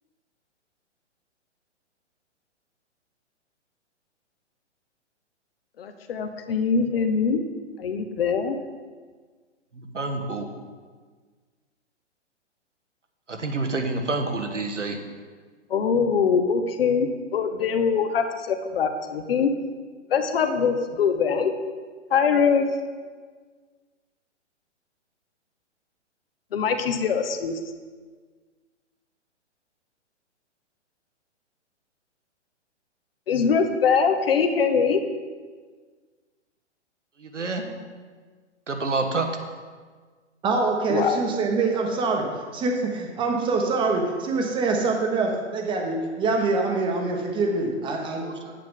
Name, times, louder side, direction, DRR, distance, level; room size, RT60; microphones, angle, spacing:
voice 1, 5.8-7.4 7.8-8.6 15.7-19.5 20.1-21.5 22.1-22.6 26.5-27.5 33.3-35.0 40.9-41.2, left 6 dB, 50° left, 7 dB, 1.0 m, -23 dB
voice 2, 9.7-10.4 13.3-15.0 37.2-37.6 38.7-39.3 48.2-48.3, right 3 dB, 80° right, 5 dB, 1.3 m, -28 dB
voice 3, 40.4-42.3 42.5-48.5, right 3 dB, 15° right, 2 dB, 1.0 m, -25 dB
9.0 x 8.9 x 3.7 m, 1.5 s
figure-of-eight pair, 120°, 36 cm